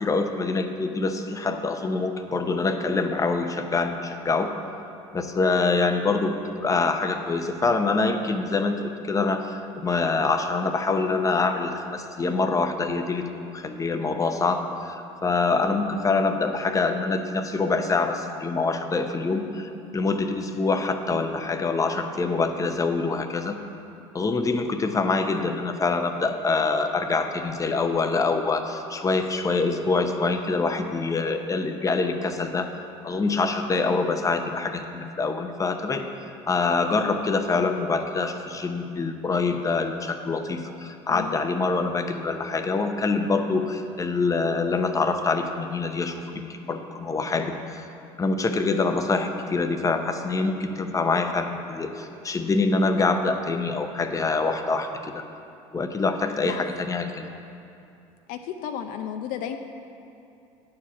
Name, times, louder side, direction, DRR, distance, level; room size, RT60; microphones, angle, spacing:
voice 1, 0.0-4.5 5.1-23.6 24.1-32.7 33.0-36.1 36.5-47.8 48.2-55.2 55.7-57.2, left 3 dB, 20° left, 6 dB, 0.8 m, -25 dB
voice 2, 58.3-59.6, left 9 dB, 60° left, 6 dB, 0.5 m, -33 dB
9.4 x 4.8 x 7.1 m, 2.7 s
hypercardioid pair, 75°, 16 cm